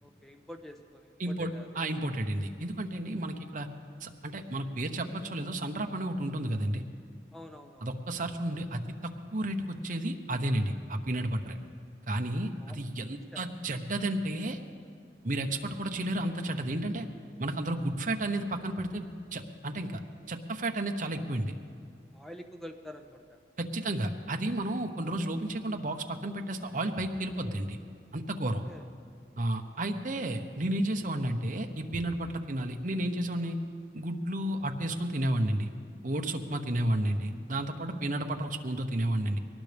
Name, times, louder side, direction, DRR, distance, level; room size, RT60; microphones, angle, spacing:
voice 1, 0.0-1.9 7.3-7.9 12.6-12.8 13.3-13.5 22.1-23.4 28.4-28.8 30.2-30.3 36.5-36.6, left 1 dB, ahead, 4 dB, 0.9 m, -47 dB
voice 2, 1.2-1.5 1.7-3.7 4.0-6.8 7.8-11.6 12.1-14.6 15.2-17.1 17.4-20.0 20.3-21.5 23.6-27.8 28.1-28.6 29.4-33.6 33.9-35.7 36.0-39.4, right 1 dB, 45° right, 4 dB, 1.0 m, -32 dB
22.5 x 18.5 x 3.5 m, 2.2 s
head